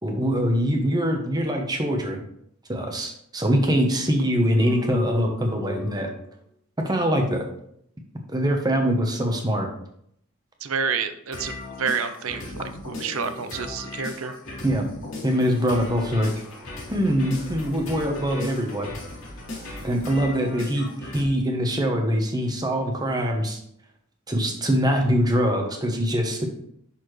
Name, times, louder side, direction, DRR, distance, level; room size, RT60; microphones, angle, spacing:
voice 1, 0.0-2.2 2.7-6.1 6.8-7.4 8.3-9.7 14.6-14.9 15.2-16.3 16.9-18.9 19.8-23.6 24.3-26.5, equal, 20° right, 3 dB, 1.0 m, -23 dB
sound 1, 4.6-6.3 11.3-21.2, left 2 dB, 65° left, 3.0 m, -36 dB
voice 2, 10.6-14.3, right 6 dB, 85° right, 10 dB, 0.7 m, -29 dB
10.5 x 4.3 x 3.2 m, 0.71 s
head